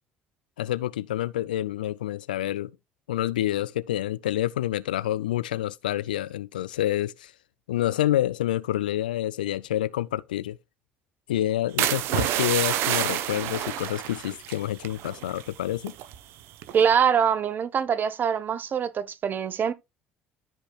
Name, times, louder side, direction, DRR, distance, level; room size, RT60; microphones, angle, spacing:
voice 1, 0.6-2.7 3.1-7.3 7.7-10.6 11.3-15.9, left 13 dB, 80° left, 0.3 m, -28 dB
sound 1, 11.8-15.5 15.8-16.2 16.6-16.9, right 12 dB, 60° right, 0.8 m, -28 dB
voice 2, 16.7-19.7, right 7 dB, 45° right, 1.1 m, -23 dB
13.5 x 5.2 x 2.3 m
figure-of-eight pair, 55°, 5 cm